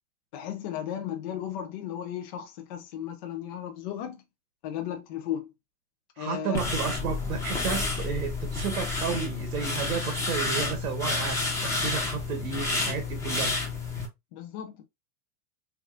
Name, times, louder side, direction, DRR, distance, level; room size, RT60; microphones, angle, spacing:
voice 1, 0.3-4.2 4.6-5.5 6.2-6.7 14.3-14.8, left 10 dB, 35° left, 0.4 m, -35 dB
voice 2, 6.2-13.6, right 7 dB, 85° right, 1.3 m, -32 dB
sound 1, 6.5-14.1, left 3 dB, 5° left, 0.7 m, -30 dB
3.5 x 3.5 x 2.4 m
supercardioid pair, 155°, 44 cm